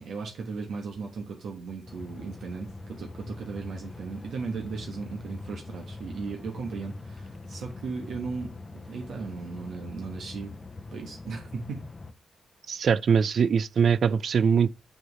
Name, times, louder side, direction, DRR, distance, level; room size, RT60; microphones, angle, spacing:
voice 1, 0.0-10.5 10.9-11.8, right 4 dB, 80° right, 1.3 m, -36 dB
sound 1, 1.9-12.1, left 3 dB, 30° left, 0.7 m, -43 dB
voice 2, 12.7-14.7, right 6 dB, 65° right, 0.3 m, -22 dB
6.4 x 4.7 x 3.3 m
cardioid pair, 85°, 0 cm